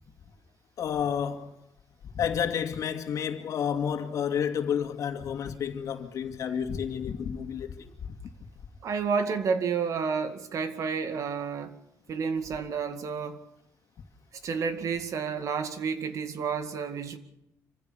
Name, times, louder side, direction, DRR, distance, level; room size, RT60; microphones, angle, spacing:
voice 1, 0.8-1.5 2.1-8.1, left 8 dB, 65° left, 2.2 m, -30 dB
voice 2, 8.8-11.8 12.1-13.4 14.4-17.2, right 6 dB, 65° right, 2.2 m, -30 dB
26.5 x 15.5 x 7.0 m
cardioid pair, 110°, 6 cm